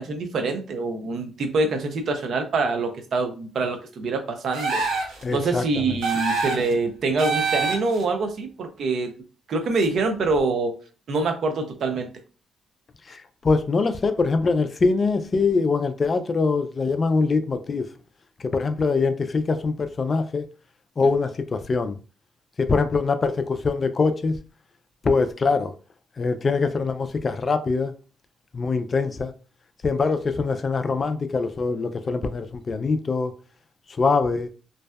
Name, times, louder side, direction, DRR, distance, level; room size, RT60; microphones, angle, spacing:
voice 1, 0.0-9.1 9.5-10.8 11.1-12.1, right 3 dB, 60° right, 0.5 m, -25 dB
sound 1, 4.5-5.2 6.0-6.7 7.2-8.0, right 4 dB, 90° right, 0.8 m, -25 dB
voice 2, 5.2-6.0 13.1-17.9 18.4-20.4 21.0-22.0 22.6-24.3 25.0-25.7 26.2-27.9 28.5-29.3 29.8-33.3 34.0-34.5, left 4 dB, 40° left, 0.3 m, -23 dB
2.6 x 2.1 x 2.2 m
cardioid pair, 90°, 0 cm